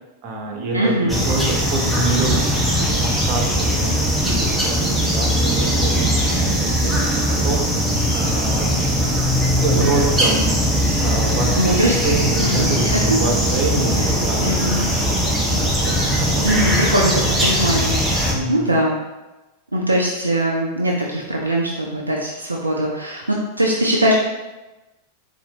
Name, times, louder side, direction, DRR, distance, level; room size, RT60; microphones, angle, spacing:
voice 1, 0.2-6.1 6.4-7.6 8.1-8.9 9.6-10.6 11.0-14.5 15.6-16.7 18.3-18.8, right 3 dB, 45° right, -1 dB, 1.0 m, -26 dB
voice 2, 0.7-1.1 11.6-12.0 12.4-13.2 14.0-14.1 14.4-14.9 16.4-19.0 19.7-24.1, equal, 80° right, -2 dB, 0.5 m, -21 dB
sound 1, 1.1-18.3, equal, 5° right, 0.8 m, -20 dB
4.2 x 2.6 x 4.1 m, 1.1 s
figure-of-eight pair, 90°, 0 cm